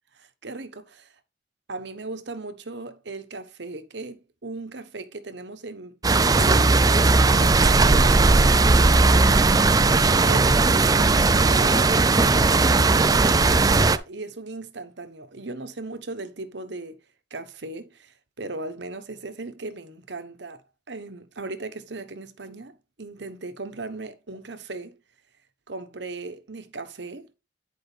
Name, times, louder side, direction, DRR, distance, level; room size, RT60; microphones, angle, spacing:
voice 1, 0.1-1.1 1.7-7.1 7.4-8.4 9.8-9.9 10.3-17.0 17.3-20.6 20.9-25.0 25.7-27.3, right 3 dB, 75° right, 1.1 m, -37 dB
sound 1, 6.0-14.0, right 3 dB, 20° right, 0.4 m, -18 dB
10.5 x 4.9 x 3.3 m
head